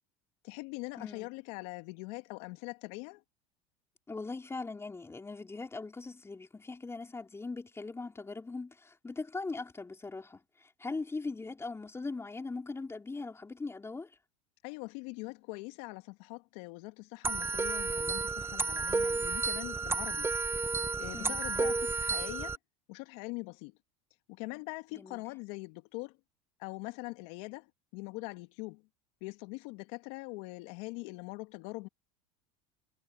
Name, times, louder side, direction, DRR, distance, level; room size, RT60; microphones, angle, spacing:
voice 1, 0.4-3.2 14.6-20.3 21.0-22.6 22.9-23.8 24.3-26.2 26.6-27.7 27.9-28.8 29.2-31.9, left 26 dB, 70° left, 2.4 m, -42 dB
voice 2, 1.0-1.3 4.1-14.1 21.1-21.8 24.9-25.2, left 3 dB, 15° left, 4.6 m, -40 dB
sound 1, 17.2-22.6, right 4 dB, 15° right, 0.8 m, -32 dB
hypercardioid pair, 90°, 17 cm